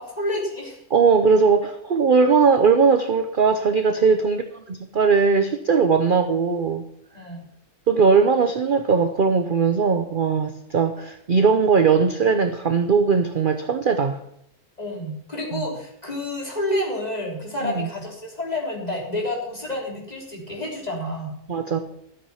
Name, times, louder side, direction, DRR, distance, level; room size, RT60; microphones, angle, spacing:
voice 1, 0.1-0.8 3.9-4.1 7.1-7.4 14.8-21.3, left 1 dB, 25° left, -2 dB, 3.9 m, -29 dB
voice 2, 0.9-6.8 7.9-14.2 15.5-15.7 17.6-17.9 21.5-21.8, right 5 dB, 40° right, 8 dB, 0.8 m, -19 dB
13.5 x 7.9 x 5.7 m, 0.73 s
omnidirectional pair, 1.6 m